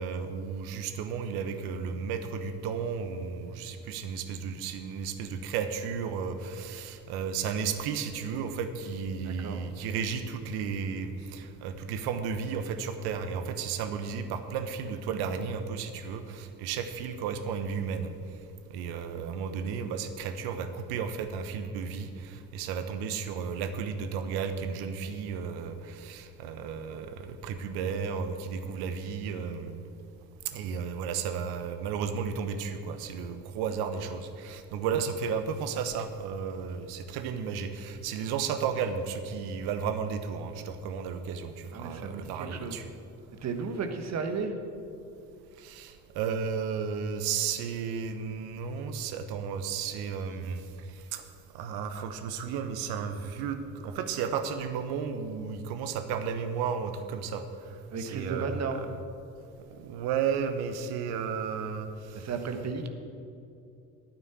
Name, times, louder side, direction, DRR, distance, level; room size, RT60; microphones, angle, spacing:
voice 1, 0.0-18.1 18.7-29.8 30.4-42.9 45.6-50.6 51.1-51.2 51.5-57.4 58.0-58.7 59.7-62.2, right 6 dB, 50° right, 9 dB, 1.1 m, -33 dB
voice 2, 9.2-9.7 41.7-42.8 43.4-44.6 57.9-58.8 62.1-62.9, right 5 dB, 30° right, 7 dB, 1.4 m, -34 dB
10.0 x 9.2 x 8.0 m, 2.7 s
figure-of-eight pair, 60°, 49 cm